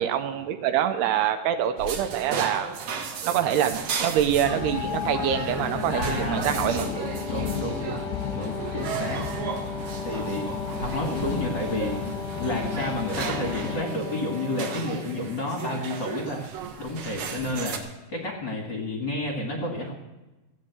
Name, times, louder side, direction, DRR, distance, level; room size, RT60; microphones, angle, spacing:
voice 1, 0.0-2.7 3.3-6.9, right 10 dB, 85° right, 8 dB, 2.9 m, -25 dB
sound 1, 1.8-17.8, right 6 dB, 60° right, 2.2 m, -35 dB
sound 2, 4.4-13.8, left 9 dB, 85° left, 2.8 m, -34 dB
voice 2, 5.9-6.9 7.2-8.0 8.3-9.2 10.0-10.4 10.8-11.9 12.4-16.4 16.8-17.8 18.1-19.9, left 1 dB, 50° left, 0 dB, 1.4 m, -30 dB
Brass instrument, 6.7-15.4, left 3 dB, 65° left, 1.6 m, -37 dB
16.0 x 7.7 x 8.1 m, 1.1 s
omnidirectional pair, 4.8 m